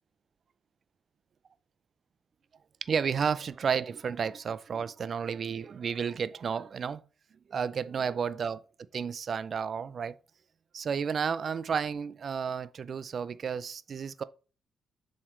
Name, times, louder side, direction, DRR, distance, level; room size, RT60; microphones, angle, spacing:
voice 1, 2.8-7.0 7.5-8.6 8.9-10.2 10.7-14.2, right 6 dB, 55° right, 0.4 m, -32 dB
7.3 x 3.2 x 4.4 m
cardioid pair, 100°, 0 cm